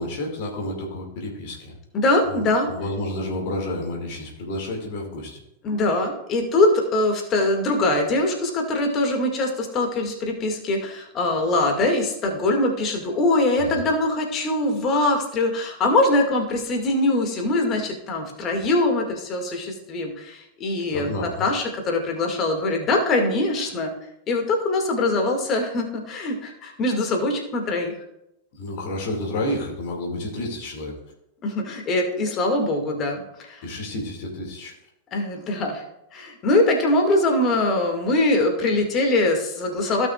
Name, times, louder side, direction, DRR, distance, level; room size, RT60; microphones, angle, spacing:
voice 1, 0.0-1.8 2.2-5.4 13.6-13.8 20.9-21.5 28.5-30.9 33.6-34.7, left 1 dB, 50° left, 0 dB, 2.2 m, -30 dB
voice 2, 1.9-2.7 5.6-23.9 24.3-27.9 31.4-33.6 35.1-35.8 36.1-40.1, left 2 dB, 30° left, 3 dB, 2.1 m, -22 dB
16.0 x 6.2 x 2.4 m, 0.83 s
figure-of-eight pair, 90°, 0 cm